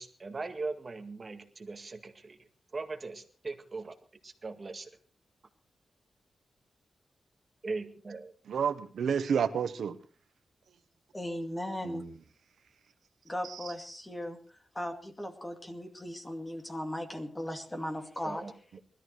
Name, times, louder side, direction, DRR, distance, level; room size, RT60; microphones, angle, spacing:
voice 1, 0.0-2.4 2.7-4.0 4.2-4.9 7.6-8.3 18.2-18.8, right 3 dB, 30° right, 1.9 m, -40 dB
voice 2, 8.5-10.0 11.8-12.1 13.4-13.7, right 7 dB, 85° right, 1.1 m, -30 dB
voice 3, 11.1-12.0 13.3-14.4 14.7-18.4, left 1 dB, 10° left, 2.3 m, -37 dB
20.5 x 13.5 x 4.6 m
wide cardioid pair, 150°, 0 cm